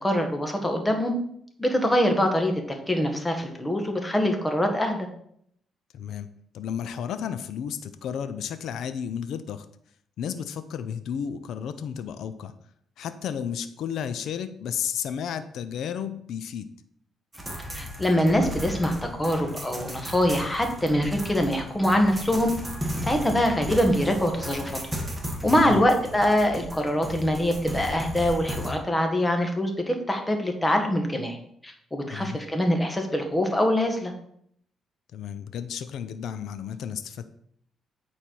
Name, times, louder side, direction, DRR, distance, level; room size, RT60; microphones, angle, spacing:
voice 1, 0.0-1.1 1.6-5.1 17.7-22.5 23.0-24.7 25.4-31.4 31.6-34.1, equal, 15° left, 4 dB, 1.5 m, -24 dB
voice 2, 5.9-6.3 6.5-9.7 10.2-12.5 13.0-16.7 25.4-25.9 32.1-32.4 35.1-37.3, left 8 dB, 75° left, 11 dB, 0.5 m, -33 dB
sound 1, 17.3-28.7, equal, 10° right, 1.9 m, -35 dB
8.8 x 4.4 x 4.6 m, 0.68 s
cardioid pair, 90°, 0 cm